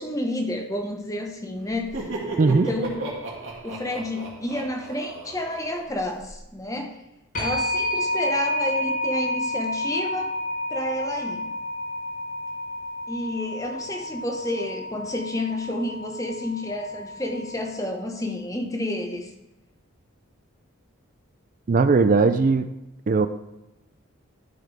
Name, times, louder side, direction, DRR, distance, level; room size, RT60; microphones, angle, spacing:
voice 1, 0.0-2.1 2.5-3.1 3.6-7.0 7.4-10.3 10.7-11.5 13.1-19.3, left 1 dB, 15° left, 3 dB, 0.9 m, -30 dB
Laughter, 1.7-6.4, right 2 dB, 60° right, 2.0 m, -34 dB
voice 2, 2.4-2.7 21.7-22.7 23.1-23.3, right 4 dB, 40° right, 11 dB, 0.3 m, -18 dB
sound 1, 7.3-18.0, left 1 dB, 40° left, 1.0 m, -30 dB
12.5 x 5.8 x 3.4 m, 0.97 s
head